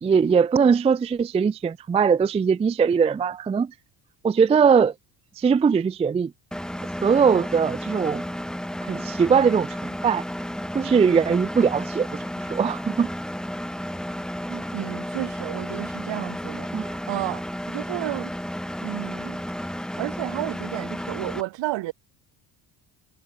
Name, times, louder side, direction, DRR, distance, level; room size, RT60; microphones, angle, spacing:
voice 1, 0.0-3.7 4.2-4.9 5.4-6.3 7.0-8.2 8.8-10.2 10.7-12.2 12.5-13.1 16.7-16.9, right 6 dB, 15° right, 0.3 m, -20 dB
Engine, 6.5-21.4, equal, ahead, 3.2 m, -32 dB
voice 2, 14.5-18.3 18.8-19.4 20.0-21.9, right 17 dB, 70° right, 1.7 m, -32 dB
cardioid pair, 145°, 46 cm